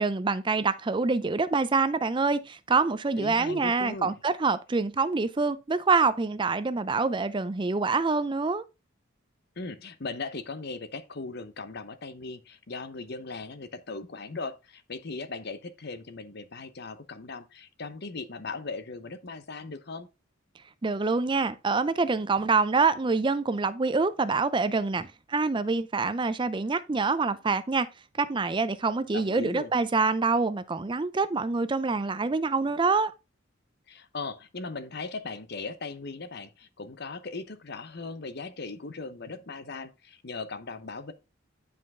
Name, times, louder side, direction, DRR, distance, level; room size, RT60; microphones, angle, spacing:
voice 1, 0.0-8.6 20.8-27.9 28.2-33.1, right 4 dB, 25° right, 0.4 m, -26 dB
voice 2, 3.2-4.2 9.6-20.1 29.1-29.7 33.9-41.1, left 3 dB, 55° left, 1.0 m, -38 dB
9.7 x 5.4 x 3.6 m
head